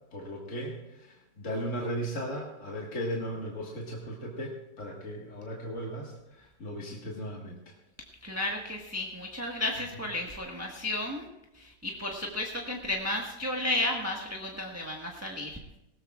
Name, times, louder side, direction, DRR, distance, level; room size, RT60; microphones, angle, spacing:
voice 1, 0.1-7.7, equal, 40° left, -2 dB, 2.0 m, -37 dB
voice 2, 8.2-11.3 11.5-15.5, left 2 dB, 10° right, -1 dB, 1.2 m, -33 dB
20.0 x 17.0 x 2.4 m, 0.92 s
omnidirectional pair, 2.1 m